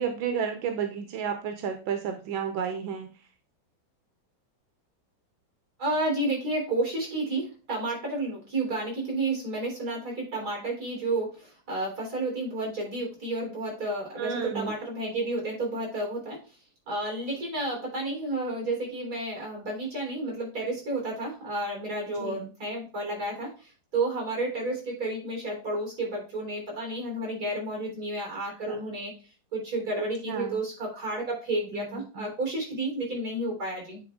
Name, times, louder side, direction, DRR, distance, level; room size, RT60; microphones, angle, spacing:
voice 1, 0.0-3.1 14.2-14.8 22.2-22.5 28.7-28.8 30.3-30.6 31.7-32.3, right 7 dB, 90° right, 6 dB, 1.6 m, -32 dB
voice 2, 5.8-16.4 16.9-29.1 29.5-34.0, right 2 dB, 50° right, 0 dB, 4.5 m, -31 dB
9.6 x 3.9 x 3.7 m, 0.35 s
omnidirectional pair, 2.1 m